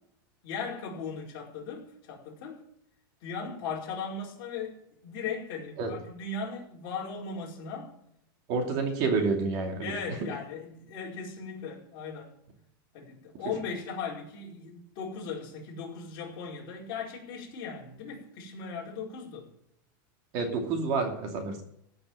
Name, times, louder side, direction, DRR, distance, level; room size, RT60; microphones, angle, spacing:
voice 1, 0.4-2.6 3.2-7.9 9.8-12.3 12.9-19.5, left 5 dB, 40° left, 4.9 m, -38 dB
voice 2, 8.5-10.3 20.3-21.6, right 4 dB, 40° right, 2.7 m, -29 dB
14.5 x 7.0 x 9.3 m
supercardioid pair, 165°, 12 cm